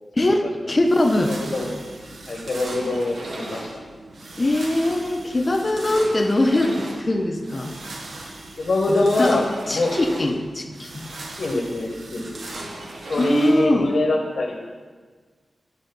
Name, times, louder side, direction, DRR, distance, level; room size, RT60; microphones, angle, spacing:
voice 1, 0.2-1.3 4.4-7.8 8.9-9.4 9.7-11.1 13.2-13.9, left 1 dB, 30° left, 4 dB, 0.8 m, -22 dB
sound 1, 0.8-14.0, right 2 dB, 70° right, 1.0 m, -37 dB
voice 2, 1.4-1.8 2.3-3.7 8.6-9.9 11.4-12.3 13.1-14.6, left 2 dB, 65° left, 0 dB, 1.3 m, -23 dB
11.0 x 5.1 x 5.3 m, 1.5 s
wide cardioid pair, 125°, 0 cm